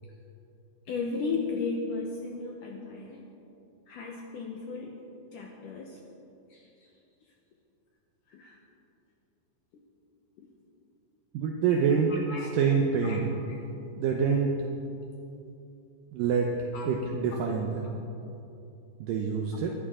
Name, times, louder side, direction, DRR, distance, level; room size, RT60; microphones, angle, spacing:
voice 1, 0.9-3.2 3.9-5.0 5.3-6.0 6.5-6.9 8.3-8.6 10.4-10.5 12.1-12.6 13.0-13.2 13.5-13.6 16.7-16.9 17.3-17.4 19.5-19.6, left 4 dB, 75° left, 0 dB, 2.0 m, -35 dB
voice 2, 11.3-12.1 12.5-13.3 14.0-14.5 16.1-16.5 16.9-18.0 19.0-19.7, right 6 dB, 75° right, 1 dB, 2.1 m, -26 dB
22.0 x 11.0 x 3.7 m, 2.8 s
omnidirectional pair, 4.7 m